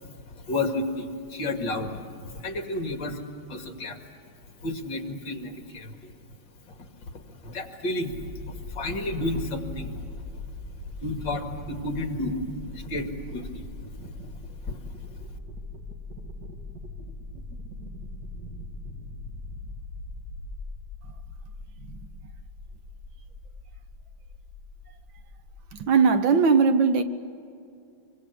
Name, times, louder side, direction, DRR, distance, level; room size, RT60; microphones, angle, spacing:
voice 1, 0.0-3.2 3.5-4.0 4.4-6.1 6.6-10.4 11.0-12.4 12.7-13.6 14.7-14.8, left 2 dB, 60° left, 2.8 m, -32 dB
sound 1, 8.1-25.9, left 2 dB, 50° right, 2.7 m, -40 dB
voice 2, 25.7-27.0, right 5 dB, 70° right, 1.7 m, -20 dB
25.0 x 24.5 x 8.5 m
omnidirectional pair, 2.3 m